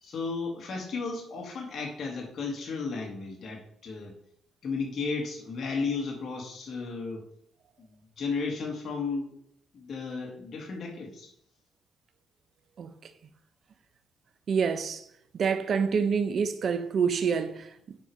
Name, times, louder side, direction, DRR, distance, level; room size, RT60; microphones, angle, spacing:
voice 1, 0.0-4.1 4.6-7.2 7.9-9.3 9.7-11.3, left 4 dB, 50° left, 2.3 m, -34 dB
voice 2, 12.8-13.1 14.5-15.1 15.3-18.0, right 6 dB, 55° right, 1.0 m, -27 dB
9.8 x 4.7 x 5.0 m
cardioid pair, 90°, 0 cm